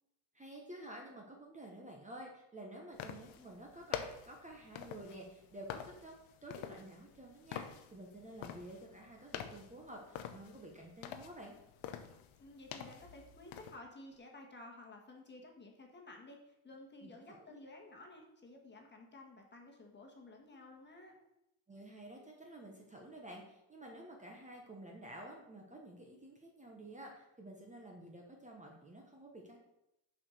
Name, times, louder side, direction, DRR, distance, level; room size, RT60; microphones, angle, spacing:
voice 1, 0.3-6.2 6.4-11.5 17.0-17.6 21.7-29.6, right 1 dB, 15° right, 0 dB, 1.1 m, -51 dB
sound 1, 2.9-13.8, left 9 dB, 80° left, 0.9 m, -47 dB
voice 2, 12.4-21.2, left 2 dB, 25° left, 1 dB, 1.5 m, -54 dB
7.1 x 4.9 x 6.3 m, 0.86 s
cardioid pair, 145°, 47 cm